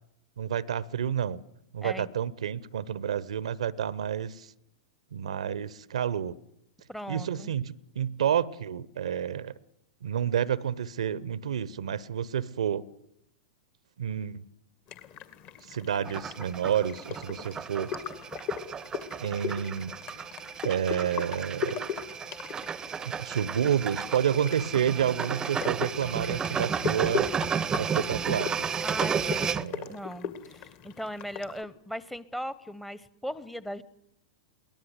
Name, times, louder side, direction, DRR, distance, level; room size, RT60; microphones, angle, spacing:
voice 1, 0.4-1.4 1.7-4.5 5.1-6.4 7.1-9.5 10.0-12.9 14.0-14.4 15.7-17.9 19.2-20.2 20.6-21.8 23.0-27.3 27.8-28.7 29.6-29.9, right 9 dB, 70° right, 0.8 m, -29 dB
voice 2, 6.9-7.5 28.8-33.8, equal, 5° left, 1.0 m, -38 dB
sound 1, 14.9-31.6, left 8 dB, 40° left, 2.1 m, -39 dB
sound 2, 16.0-29.6, right 7 dB, 20° right, 0.8 m, -33 dB
22.5 x 18.5 x 8.1 m
figure-of-eight pair, 100°, 3 cm